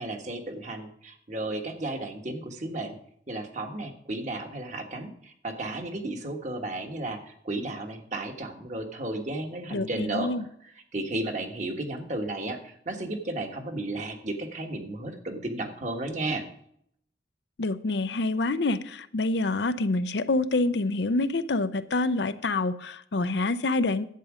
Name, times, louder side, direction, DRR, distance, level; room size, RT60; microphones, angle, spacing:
voice 1, 0.0-3.0 3.3-10.3 10.9-16.4, right 2 dB, 40° right, 4 dB, 1.5 m, -33 dB
voice 2, 9.7-10.4 17.6-24.0, left 2 dB, 70° left, 12 dB, 0.6 m, -27 dB
11.0 x 8.5 x 5.0 m, 0.69 s
head